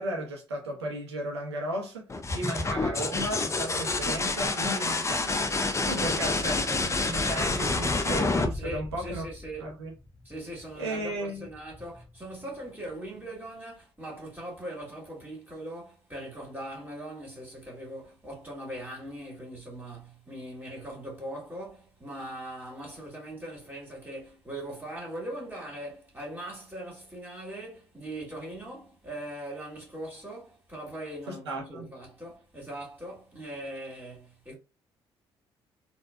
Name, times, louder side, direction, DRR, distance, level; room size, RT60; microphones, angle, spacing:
voice 1, 0.0-2.1 2.3-5.5 5.8-9.3 9.6-9.9 10.8-11.5 31.3-31.9, right 1 dB, 85° right, 0.7 m, -35 dB
sound 1, 2.1-9.7 11.5-12.0, left 3 dB, 20° left, 0.6 m, -28 dB
voice 2, 5.7-6.9 8.5-9.7 10.3-34.5, right 1 dB, 15° right, 1.8 m, -40 dB
3.6 x 2.3 x 2.2 m
figure-of-eight pair, 45°, 13 cm